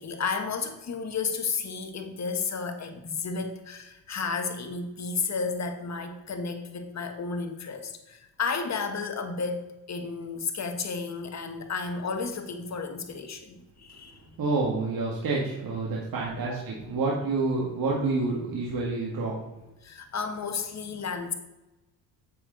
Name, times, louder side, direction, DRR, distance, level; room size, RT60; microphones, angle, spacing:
voice 1, 0.0-14.3 16.4-16.6 19.8-21.4, left 5 dB, 40° left, 6 dB, 1.5 m, -32 dB
voice 2, 14.4-19.4, right 3 dB, 50° right, -4 dB, 1.9 m, -28 dB
7.5 x 6.7 x 4.0 m, 1.0 s
supercardioid pair, 70°, 43 cm